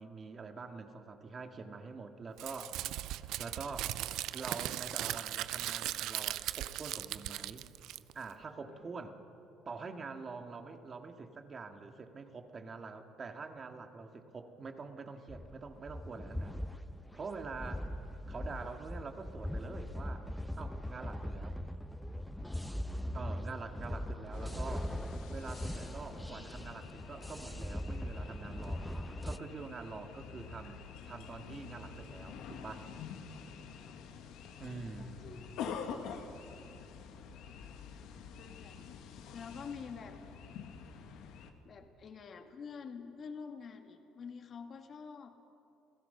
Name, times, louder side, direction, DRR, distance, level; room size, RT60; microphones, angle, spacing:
voice 1, 0.0-2.8 3.0-4.0 4.3-7.7 8.1-9.2 9.7-16.6 17.1-17.9 18.3-20.3 20.6-21.6 23.1-24.9 25.3-28.9 29.2-30.8 31.1-32.9 34.6-35.4, right 4 dB, 40° right, 6 dB, 2.0 m, -45 dB
Crumpling crinkling, 2.4-8.3, right 14 dB, 75° right, 0.5 m, -38 dB
voice 2, 8.6-8.9 17.7-17.9 29.9-30.3 33.7-34.0 34.6-35.5 38.3-40.2 41.6-45.3, left 6 dB, 50° left, 5 dB, 2.1 m, -48 dB
sound 1, 15.3-29.4, left 1 dB, 5° left, 0.7 m, -40 dB
sound 2, 24.3-41.5, left 6 dB, 75° left, 1.7 m, -47 dB
28.5 x 16.0 x 5.7 m, 2.9 s
supercardioid pair, 75°, 0 cm